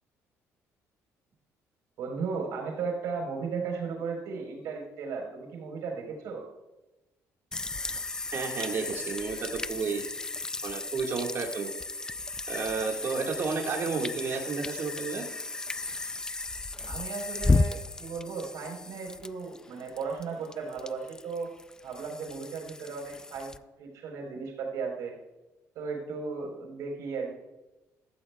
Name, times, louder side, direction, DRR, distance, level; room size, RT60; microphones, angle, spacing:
voice 1, 2.0-6.4 16.8-21.5 21.8-25.2 25.7-27.3, right 5 dB, 75° right, 1 dB, 4.0 m, -35 dB
sound 1, 7.5-23.6, left 3 dB, 15° left, 0.3 m, -34 dB
voice 2, 8.3-10.0 10.6-11.8 12.5-15.2, right 5 dB, 45° right, 1 dB, 1.8 m, -32 dB
15.0 x 13.0 x 2.3 m, 1.0 s
cardioid pair, 145°, 6 cm